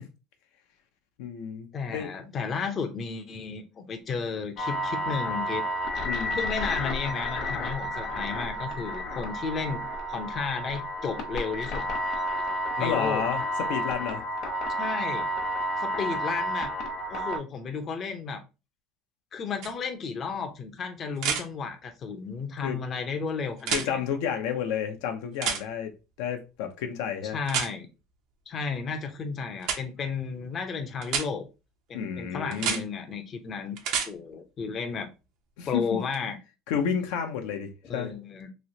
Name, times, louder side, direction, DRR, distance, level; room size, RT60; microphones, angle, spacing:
voice 1, 1.2-2.1 6.0-6.4 12.8-14.2 22.6-22.8 23.7-25.9 26.2-27.4 31.9-32.8 35.6-36.0 36.7-38.1, left 8 dB, 80° left, 0.6 m, -31 dB
voice 2, 1.7-5.6 6.3-9.8 10.1-11.8 12.8-13.2 14.8-15.3 15.8-16.7 17.1-18.4 19.3-24.0 27.3-27.9 28.5-31.4 31.9-35.1 35.7-36.4 37.8-38.5, left 5 dB, 35° left, 0.6 m, -33 dB
sound 1, 4.6-17.4, equal, 50° left, 0.9 m, -31 dB
sound 2, 19.6-19.7 21.2-21.4 23.6-23.9 25.4-25.6 27.5-27.7 29.6-29.8 31.0-31.3 32.5-32.8 33.8-34.1 36.1-36.2, right 7 dB, 65° right, 0.6 m, -28 dB
3.1 x 2.9 x 2.7 m
cardioid pair, 135°, 0 cm